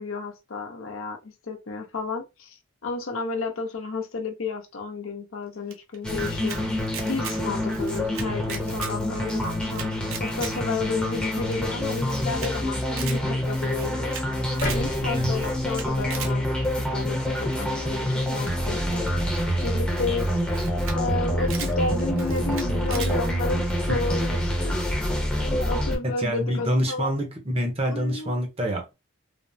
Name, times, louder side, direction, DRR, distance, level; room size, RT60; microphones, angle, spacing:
voice 1, 0.0-6.6 7.1-9.9 10.2-16.5 16.8-19.1 19.6-20.4 20.9-24.8 25.4-27.1 27.9-28.4, left 4 dB, 90° left, 0.7 m, -32 dB
Camera, 5.7-6.6 6.9-7.4 7.7-8.9 9.3-10.5 10.9-11.0 11.2-11.3 11.5-11.6 11.9-12.5 12.8-13.2 13.6-14.2 14.5-14.8 15.3-16.3 17.5-17.8 18.4-19.7 20.2-20.3 20.5-21.0 21.2-21.7 22.2-23.1, right 7 dB, 80° right, 0.6 m, -38 dB
sound 1, 6.0-26.0, equal, 5° left, 0.7 m, -26 dB
sound 2, 14.6-16.8 17.3-17.4, left 1 dB, 40° left, 0.8 m, -35 dB
voice 2, 26.2-28.9, equal, 30° right, 0.7 m, -26 dB
3.4 x 2.0 x 2.6 m
head